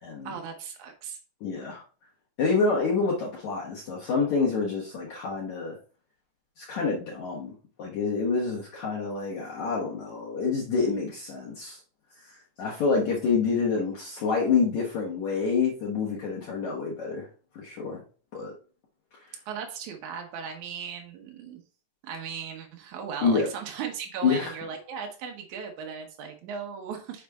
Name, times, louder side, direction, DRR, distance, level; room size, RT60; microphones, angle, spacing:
voice 1, 0.2-1.2 19.4-21.6 22.0-27.2, right 7 dB, 80° right, 3 dB, 1.7 m, -37 dB
voice 2, 1.4-1.8 2.4-5.8 6.6-11.8 12.6-17.3 17.5-18.0 18.3-18.5 23.2-23.5 24.2-24.5, left 4 dB, 65° left, -4 dB, 1.9 m, -27 dB
6.5 x 5.3 x 3.5 m, 0.38 s
omnidirectional pair, 5.0 m